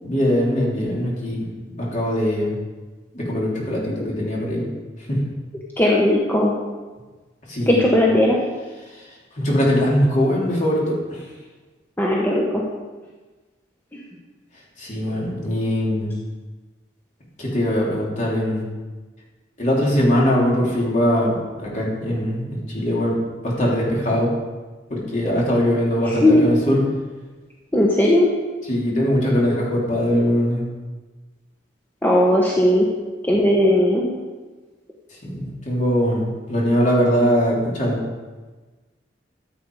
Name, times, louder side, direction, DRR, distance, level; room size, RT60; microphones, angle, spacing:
voice 1, 0.0-1.5 1.8-2.5 3.1-4.7 5.1-5.2 7.5-7.9 9.0-9.1 9.3-11.2 14.8-16.1 17.4-18.6 19.6-23.2 23.4-24.3 24.9-26.8 28.6-30.6 35.2-38.0, equal, 45° left, -4 dB, 3.3 m, -21 dB
voice 2, 5.8-6.5 7.7-8.4 12.0-12.6 26.1-26.4 27.7-28.3 32.0-32.9 33.3-34.0, left 1 dB, 10° left, -3 dB, 1.1 m, -17 dB
14.0 x 8.1 x 4.8 m, 1.3 s
head